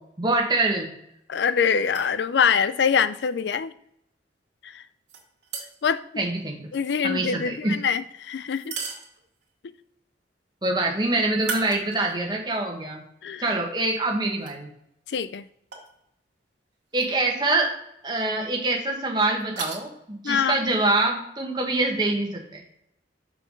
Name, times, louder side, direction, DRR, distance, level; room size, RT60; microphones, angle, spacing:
voice 1, 0.2-0.9 6.2-6.6 7.0-7.8 10.6-13.0 13.4-14.7 16.9-17.7 18.0-22.6, right 2 dB, 25° right, 1.4 m, -25 dB
voice 2, 1.3-3.7 4.6-4.8 5.8-6.0 6.7-8.8 13.2-13.5 15.1-15.4 20.2-20.6, left 6 dB, 70° left, 0.4 m, -24 dB
sound 1, 1.8-2.2 5.1-6.0 8.5-9.5 11.3-12.3 12.8-12.9 14.4-14.5 15.7-15.9 16.9-17.1 17.4-17.5 19.4-19.8, right 4 dB, 80° right, 1.8 m, -36 dB
5.9 x 4.8 x 5.2 m
head